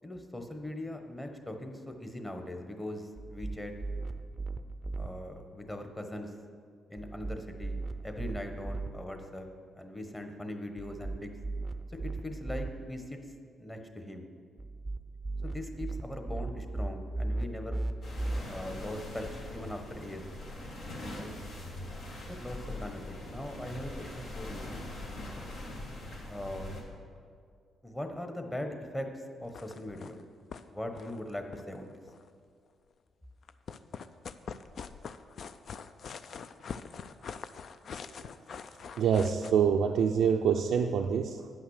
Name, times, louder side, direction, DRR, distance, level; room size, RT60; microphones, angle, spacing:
voice 1, 0.0-3.7 4.9-6.3 6.9-9.5 9.7-11.3 11.9-13.2 13.6-14.3 15.4-17.8 18.4-20.3 21.1-21.3 22.3-24.9 26.3-26.8 27.8-30.2 30.7-32.0, left 1 dB, 15° left, 5 dB, 1.1 m, -40 dB
sound 1, 3.2-5.1 7.0-8.9 10.8-12.7 14.6-18.4, right 2 dB, 20° right, 0.5 m, -37 dB
sound 2, 18.0-26.8, left 1 dB, 75° left, 1.9 m, -42 dB
sound 3, 29.4-30.2 30.5-30.6 30.9-32.3 33.4-39.5, left 6 dB, 60° left, 0.4 m, -43 dB
voice 2, 39.0-41.5, right 7 dB, 75° right, 3 dB, 0.4 m, -26 dB
9.1 x 5.8 x 6.5 m, 2.1 s
cardioid pair, 75°, 0 cm